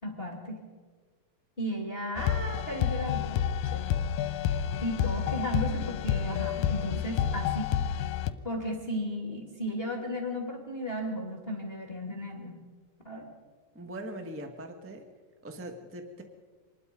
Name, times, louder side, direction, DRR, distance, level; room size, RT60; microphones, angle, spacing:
voice 1, 0.0-0.6 1.6-3.4 3.7-3.9 4.8-8.1 8.4-12.6 13.0-13.3, equal, 20° left, 0 dB, 2.3 m, -35 dB
sound 1, 2.2-8.3, left 9 dB, 75° left, 2.4 m, -29 dB
voice 2, 13.7-15.0 15.4-16.2, right 1 dB, 15° right, 4 dB, 0.4 m, -41 dB
26.0 x 20.0 x 5.4 m, 1.5 s
omnidirectional pair, 4.2 m